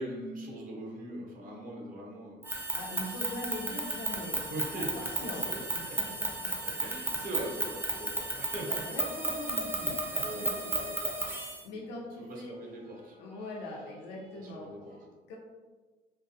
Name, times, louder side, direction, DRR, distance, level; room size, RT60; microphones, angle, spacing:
voice 1, 0.0-2.6 3.0-3.2 3.6-3.7 4.5-6.0 6.5-9.0 10.2-11.1 11.7-11.8 12.3-15.1, right 1 dB, 55° right, 0 dB, 0.7 m, -42 dB
sound 1, 2.4-11.6, right 2 dB, 15° right, 0.4 m, -34 dB
voice 2, 2.7-4.5 4.8-6.9 7.9-8.0 8.3-8.4 8.8-10.9 11.3-12.5 13.2-14.7 15.3-15.4, left 1 dB, 90° left, -2 dB, 0.4 m, -42 dB
2.3 x 2.2 x 2.6 m, 1.3 s
cardioid pair, 110°, 17 cm